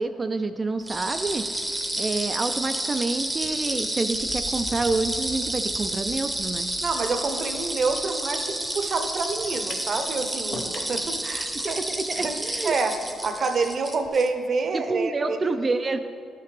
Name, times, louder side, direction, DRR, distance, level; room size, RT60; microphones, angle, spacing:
voice 1, 0.0-1.4 2.0-6.7 11.6-12.7 14.7-16.0, right 3 dB, 30° right, 8 dB, 0.3 m, -28 dB
sound 1, 0.9-14.3, right 1 dB, 10° right, 0.7 m, -30 dB
sound 2, 3.4-9.4 11.0-11.5 14.0-14.1, left 1 dB, 30° left, 0.7 m, -45 dB
voice 2, 6.8-11.8 12.2-12.4 12.6-12.9 13.2-15.4 15.7-15.8, right 4 dB, 50° right, 7 dB, 0.7 m, -27 dB
sound 3, 9.7-9.9 10.5-11.0, left 4 dB, 70° left, 0.8 m, -37 dB
12.0 x 5.8 x 3.3 m, 2.3 s
cardioid pair, 90°, 0 cm